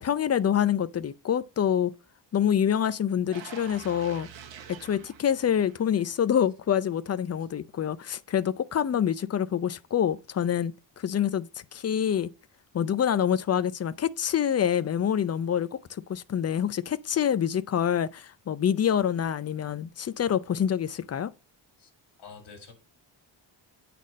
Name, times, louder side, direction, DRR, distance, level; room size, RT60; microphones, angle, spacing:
voice 1, 0.0-1.9 2.3-4.3 4.7-12.3 12.7-21.3, left 9 dB, 35° left, 0.5 m, -26 dB
sound 1, 3.3-6.3 6.7-6.8, right 7 dB, 80° right, 1.5 m, -46 dB
voice 2, 22.2-22.7, left 5 dB, 60° left, 2.4 m, -48 dB
9.1 x 4.2 x 5.1 m
cardioid pair, 130°, 45 cm